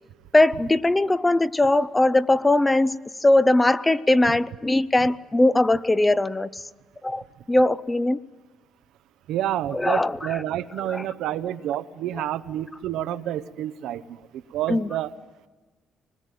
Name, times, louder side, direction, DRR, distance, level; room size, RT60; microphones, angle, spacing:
voice 1, 0.3-6.6 7.0-7.2 7.5-8.2 9.7-10.4 10.9-11.1 14.7-14.9, left 2 dB, 15° left, 16 dB, 0.7 m, -20 dB
voice 2, 9.3-15.1, right 12 dB, 85° right, 12 dB, 0.9 m, -29 dB
25.0 x 20.5 x 9.1 m, 1.3 s
cardioid pair, 100°, 0 cm